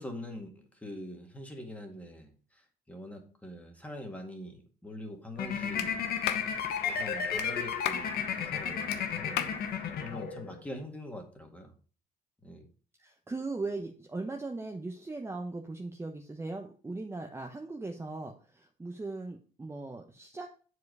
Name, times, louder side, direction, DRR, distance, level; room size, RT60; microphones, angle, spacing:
voice 1, 0.0-6.1 6.8-9.7 10.0-11.7 12.4-12.7, left 1 dB, 10° left, 3 dB, 1.9 m, -44 dB
sound 1, 5.4-10.6, left 7 dB, 65° left, 1.5 m, -33 dB
Clapping, 5.8-5.9 6.3-6.5 7.4-7.5 7.9-8.1 8.9-9.0 9.4-9.6, left 11 dB, 85° left, 0.8 m, -33 dB
voice 2, 13.0-20.5, right 3 dB, 15° right, 3 dB, 0.9 m, -39 dB
7.4 x 4.9 x 4.8 m, 0.39 s
cardioid pair, 110°, 17 cm